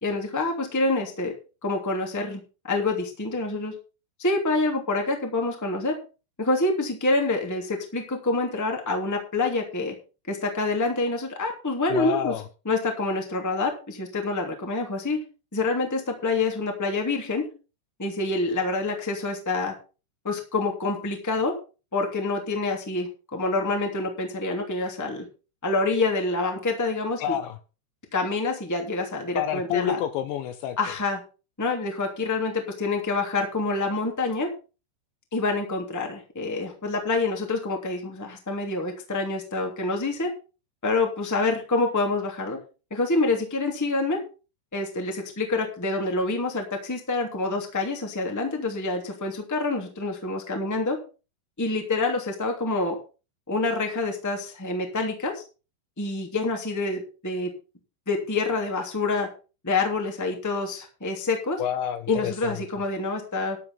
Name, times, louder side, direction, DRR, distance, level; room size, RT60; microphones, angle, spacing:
voice 1, 0.0-1.3 1.6-3.7 4.2-5.9 6.4-9.9 10.3-12.3 12.6-15.2 15.5-17.5 18.0-19.7 20.2-21.5 21.9-25.2 25.6-27.3 28.1-30.0 30.8-31.2 31.6-34.5 35.3-40.3 40.8-42.6 42.9-44.2 44.7-51.0 51.6-53.0 53.5-55.4 56.0-57.5 58.0-59.3 59.6-61.6 62.1-63.6, left 3 dB, 5° left, 1.5 m, -27 dB
voice 2, 11.9-12.5 27.2-27.6 29.4-30.8 61.6-62.6, left 10 dB, 75° left, 2.8 m, -28 dB
12.5 x 7.5 x 5.7 m
omnidirectional pair, 5.6 m